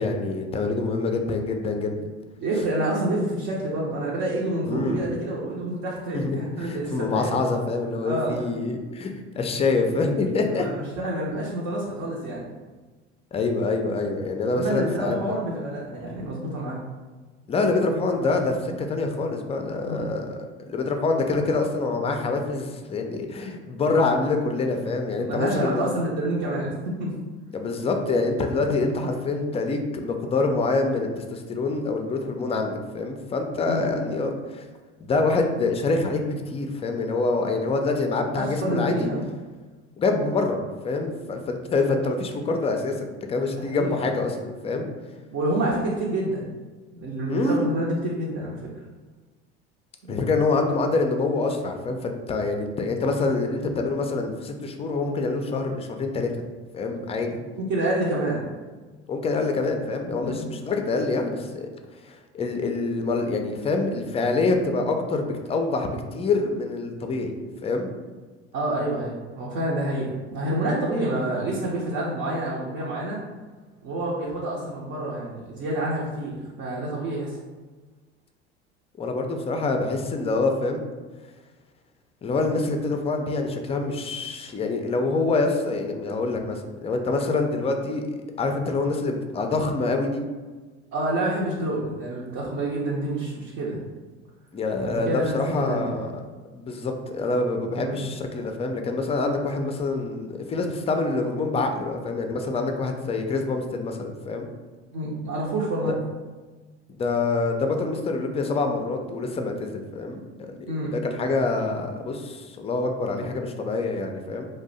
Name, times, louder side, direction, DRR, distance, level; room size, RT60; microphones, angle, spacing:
voice 1, 0.0-2.0 4.6-5.1 6.1-10.8 13.3-15.3 17.5-20.4 20.7-25.9 27.5-34.6 35.0-39.1 40.0-40.6 40.8-44.9 47.3-47.7 50.1-56.5 56.7-57.4 59.1-61.7 62.0-67.3 67.6-67.9 79.0-80.8 82.2-90.2 94.5-96.2 96.5-104.5 106.9-110.5 110.9-114.5, left 3 dB, 20° left, 5 dB, 0.4 m, -26 dB
voice 2, 2.4-7.3 8.0-8.4 10.5-12.4 14.5-16.8 19.6-20.1 25.2-27.1 28.6-28.8 33.6-33.9 38.3-39.2 43.6-43.9 45.3-46.5 46.9-48.7 50.0-50.2 57.7-58.4 60.0-60.5 68.5-73.2 73.8-77.4 90.9-93.8 94.8-95.4 95.7-96.0 97.8-98.0 104.9-105.9 110.7-110.9, right 1 dB, 55° right, -5 dB, 0.8 m, -28 dB
2.6 x 2.1 x 3.9 m, 1.3 s
hypercardioid pair, 75°, 34 cm